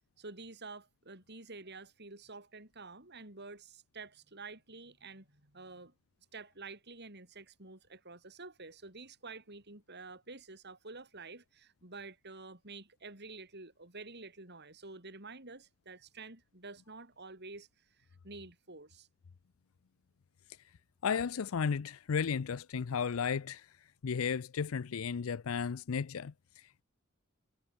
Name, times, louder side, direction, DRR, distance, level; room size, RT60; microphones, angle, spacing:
voice 1, 0.2-5.9 6.3-17.7 18.0-19.1, right 3 dB, 55° right, 6.6 m, -49 dB
voice 2, 21.0-23.7 24.0-26.3, left 6 dB, 90° left, 0.5 m, -34 dB
head